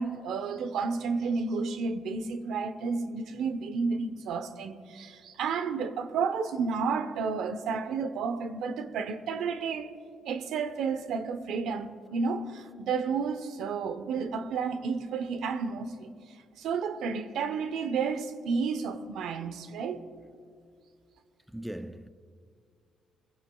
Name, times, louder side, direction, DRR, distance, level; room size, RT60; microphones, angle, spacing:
voice 1, 0.0-9.9 10.2-16.1 16.6-20.0, right 5 dB, 80° right, 0.7 m, -31 dB
voice 2, 21.5-22.1, right 1 dB, 5° right, 0.4 m, -39 dB
21.5 x 16.0 x 2.3 m
cardioid pair, 90°, 0 cm